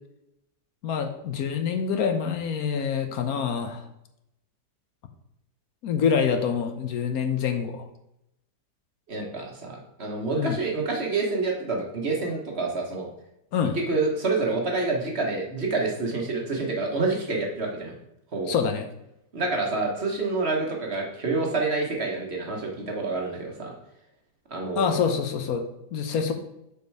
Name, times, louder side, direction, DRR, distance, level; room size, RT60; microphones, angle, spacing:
voice 1, 0.8-3.8 5.8-7.8 10.4-10.6 13.5-13.8 18.5-18.9 24.8-25.6 25.9-26.3, left 6 dB, 65° left, 7 dB, 1.2 m, -26 dB
voice 2, 9.1-13.1 13.7-17.9 18.3-18.5 19.3-23.7 24.5-25.0, right 3 dB, 40° right, 0 dB, 1.5 m, -28 dB
6.7 x 5.1 x 4.6 m, 0.83 s
omnidirectional pair, 1.8 m